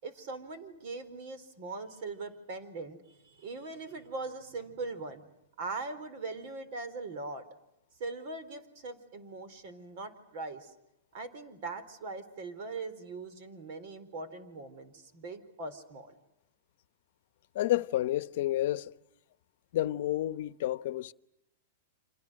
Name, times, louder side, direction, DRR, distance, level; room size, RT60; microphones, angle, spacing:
voice 1, 0.0-5.2 5.6-7.4 8.0-10.7 11.1-16.1, right 3 dB, 55° right, 4.4 m, -41 dB
voice 2, 17.5-18.9 19.7-21.1, left 14 dB, 65° left, 0.9 m, -30 dB
30.0 x 26.5 x 6.5 m
hypercardioid pair, 145°, 0 cm